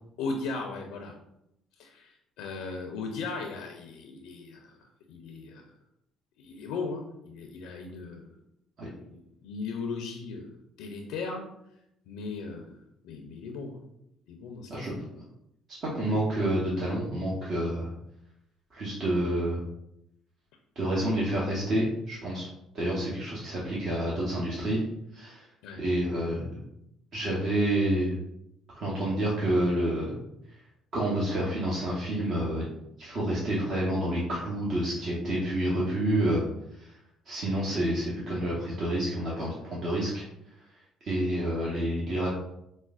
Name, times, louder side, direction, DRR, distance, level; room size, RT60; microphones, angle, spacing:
voice 1, 0.2-1.1 1.8-4.8 5.1-5.6 6.4-8.3 9.0-10.5 10.8-11.4 12.1-12.7 13.0-13.8 14.3-15.0 25.6-25.8, left 4 dB, 80° left, 2 dB, 0.4 m, -37 dB
voice 2, 15.9-17.9 18.7-19.6 20.8-22.5 22.7-24.8 25.1-25.5 25.8-26.6 27.1-28.1 28.7-30.2 30.9-32.7 33.0-36.4 36.8-36.9 37.3-40.2 41.0-42.3, right 1 dB, 55° right, -6 dB, 0.9 m, -28 dB
4.9 x 2.1 x 2.4 m, 0.80 s
hypercardioid pair, 60°, 0 cm